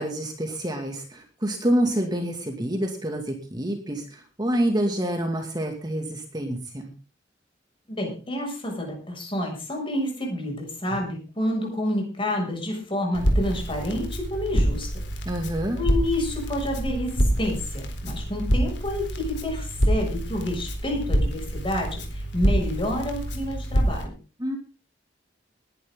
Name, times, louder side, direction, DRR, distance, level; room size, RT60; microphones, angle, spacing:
voice 1, 0.0-6.9 15.3-15.8 24.4-24.6, right 1 dB, 20° right, 3 dB, 2.4 m, -27 dB
voice 2, 7.9-15.0 15.8-24.2, left 1 dB, 30° left, 2 dB, 6.8 m, -29 dB
Crackle, 13.1-24.0, equal, 65° left, 4.0 m, -26 dB
20.5 x 11.0 x 3.9 m, 0.34 s
head